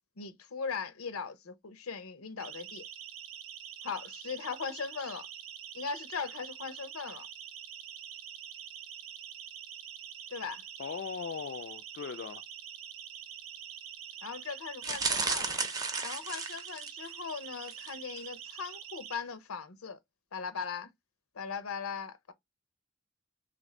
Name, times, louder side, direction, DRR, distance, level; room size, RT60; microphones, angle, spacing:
voice 1, 0.2-2.8 3.8-5.3 5.7-7.3 10.3-10.6 14.2-15.6 16.0-20.0 20.3-20.9 21.3-22.3, left 5 dB, 85° left, 0.7 m, -39 dB
Siren, 2.4-19.2, right 9 dB, 80° right, 0.7 m, -46 dB
voice 2, 10.8-12.4, left 6 dB, 55° left, 0.3 m, -39 dB
sound 1, 14.8-17.1 17.6-17.9 18.2-18.3, right 4 dB, 15° right, 0.5 m, -33 dB
3.2 x 2.6 x 4.3 m
head